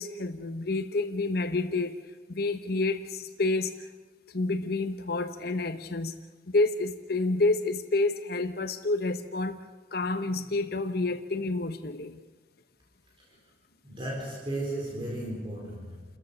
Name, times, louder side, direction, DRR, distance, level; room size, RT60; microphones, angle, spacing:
voice 1, 0.0-2.0 2.3-3.9 4.3-6.1 6.5-9.6 9.9-12.2, left 2 dB, 55° left, 9 dB, 1.0 m, -29 dB
voice 2, 13.8-16.1, right 1 dB, 30° right, -3 dB, 4.2 m, -35 dB
29.5 x 14.5 x 6.7 m, 1.3 s
head